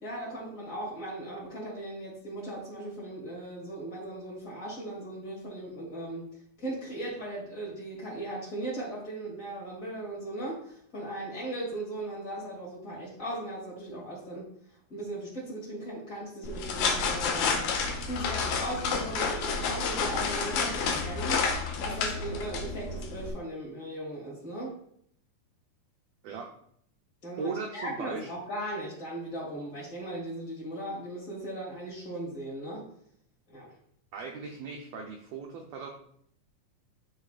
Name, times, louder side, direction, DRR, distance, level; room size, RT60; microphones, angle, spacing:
voice 1, 0.0-6.3 6.6-14.5 14.9-17.7 18.1-21.4 21.8-24.8 27.2-32.9 33.5-33.7, right 1 dB, 25° left, -5 dB, 2.4 m, -38 dB
sound 1, 16.4-23.3, left 5 dB, 75° left, 2.0 m, -30 dB
voice 2, 27.4-28.3 34.1-35.9, right 4 dB, 90° right, 1 dB, 1.5 m, -38 dB
11.5 x 3.9 x 2.4 m, 0.65 s
omnidirectional pair, 3.8 m